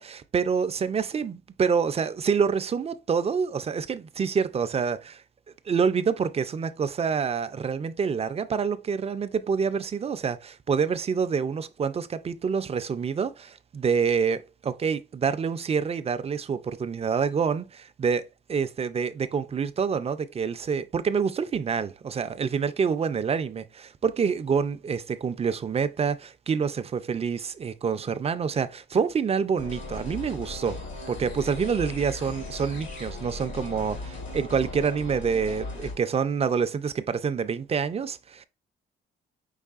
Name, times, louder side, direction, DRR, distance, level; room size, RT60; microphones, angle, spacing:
voice 1, 0.0-5.2 5.7-30.8 31.1-38.5, right 6 dB, 30° right, 0.4 m, -27 dB
sound 1, 29.6-35.9, left 2 dB, 70° left, 1.9 m, -37 dB
5.5 x 3.2 x 2.4 m
cardioid pair, 90°, 20 cm